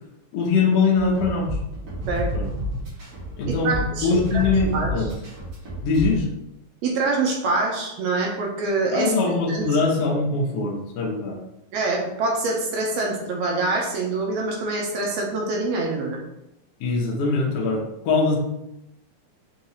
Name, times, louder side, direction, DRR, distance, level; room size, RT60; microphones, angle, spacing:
voice 1, 0.3-1.6 2.3-2.5 3.4-3.7 4.0-5.1 5.8-6.3 8.9-11.4 16.8-18.4, left 4 dB, 70° left, -1 dB, 1.6 m, -22 dB
sound 1, 1.0-6.2, equal, 45° right, 2.0 m, -30 dB
voice 2, 3.5-4.9 6.8-9.1 9.5-9.6 11.7-16.2, right 3 dB, 75° right, 0 dB, 1.9 m, -25 dB
5.6 x 2.9 x 2.8 m, 0.87 s
omnidirectional pair, 3.3 m